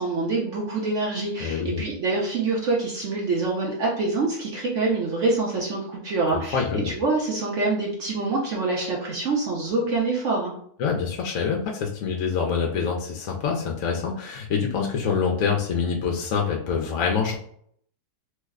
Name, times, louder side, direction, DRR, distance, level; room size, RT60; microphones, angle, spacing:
voice 1, 0.0-10.5, right 3 dB, 60° right, -3 dB, 0.9 m, -25 dB
voice 2, 1.4-1.8 6.3-6.9 10.8-17.3, left 6 dB, 65° left, 0 dB, 0.8 m, -26 dB
3.2 x 2.1 x 3.5 m, 0.63 s
omnidirectional pair, 1.7 m